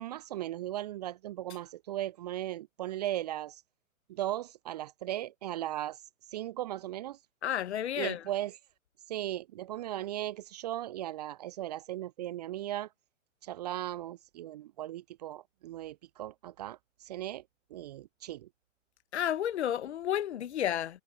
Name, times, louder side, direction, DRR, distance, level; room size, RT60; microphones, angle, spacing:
voice 1, 0.0-3.6 4.1-6.0 6.3-7.2 8.0-8.6 9.1-12.9 13.4-17.4 17.7-18.5, right 13 dB, 30° right, 0.6 m, -37 dB
voice 2, 7.4-8.2 19.1-21.0, left 10 dB, 55° left, 1.2 m, -31 dB
figure-of-eight pair, 115°, 40 cm